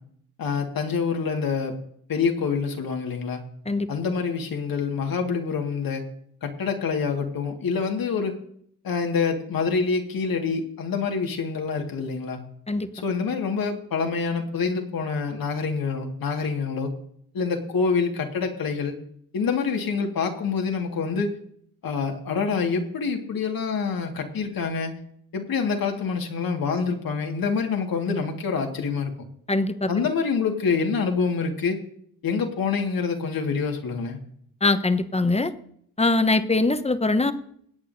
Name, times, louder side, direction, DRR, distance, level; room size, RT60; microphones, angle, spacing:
voice 1, 0.4-1.7 2.1-3.4 3.9-6.0 6.4-8.3 8.8-12.4 12.9-16.9 17.3-18.9 19.3-21.3 21.8-25.0 25.3-29.1 29.9-31.8 32.2-34.2, left 5 dB, 70° left, 3 dB, 2.0 m, -26 dB
voice 2, 29.5-29.9 34.6-35.5 36.0-37.3, left 2 dB, 15° left, 10 dB, 1.0 m, -22 dB
22.0 x 8.5 x 2.7 m, 0.66 s
supercardioid pair, 50°, 36 cm